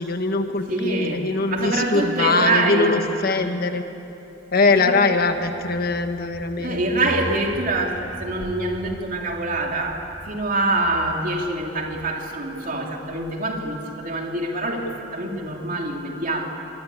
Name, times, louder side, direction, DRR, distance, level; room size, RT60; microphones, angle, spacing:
voice 1, 0.0-3.8 4.5-7.1, left 3 dB, 50° left, 7 dB, 1.4 m, -22 dB
voice 2, 0.7-3.0 4.8-5.0 6.6-16.5, right 2 dB, 45° right, 1 dB, 3.1 m, -25 dB
Hungry As a Lion, 5.1-12.0, equal, 30° left, 6.4 m, -41 dB
25.0 x 23.0 x 8.4 m, 2.9 s
head